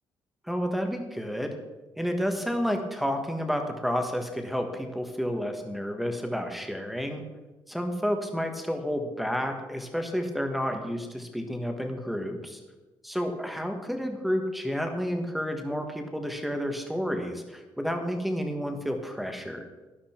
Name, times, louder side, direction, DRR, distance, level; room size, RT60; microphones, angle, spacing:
voice 1, 0.5-1.6 2.0-7.2 7.7-12.6 13.0-19.7, equal, ahead, 5 dB, 1.4 m, -30 dB
12.5 x 12.0 x 4.4 m, 1.2 s
cardioid pair, 165°, 9 cm